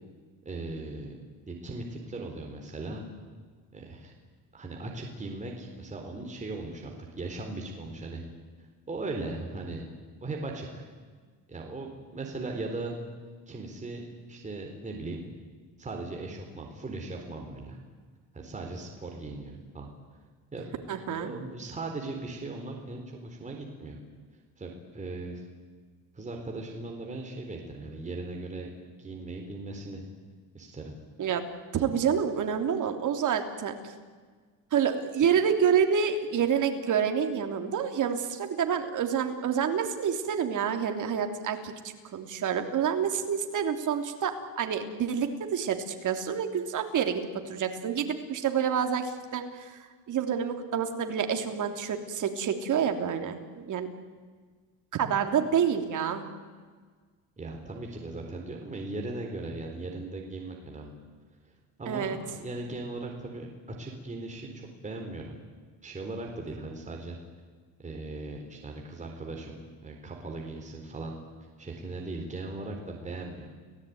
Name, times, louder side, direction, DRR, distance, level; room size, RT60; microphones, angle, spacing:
voice 1, 0.5-1.2 1.5-3.1 3.7-4.1 4.5-8.2 8.9-9.8 10.2-10.9 11.5-12.9 13.5-15.3 15.8-17.8 18.3-19.9 20.5-24.0 24.6-25.4 26.1-28.7 29.0-30.0 30.5-30.9 57.4-60.9 61.8-63.5 63.8-65.4 65.8-67.2 67.8-71.1 71.6-73.5, right 2 dB, 15° right, 1 dB, 4.1 m, -38 dB
voice 2, 20.9-21.3 31.2-31.4 31.7-33.9 34.7-41.7 42.1-49.8 50.1-53.9 54.9-56.2 61.9-62.2, right 7 dB, 45° right, 6 dB, 3.2 m, -28 dB
30.0 x 18.0 x 9.5 m, 1.5 s
cardioid pair, 130°, 42 cm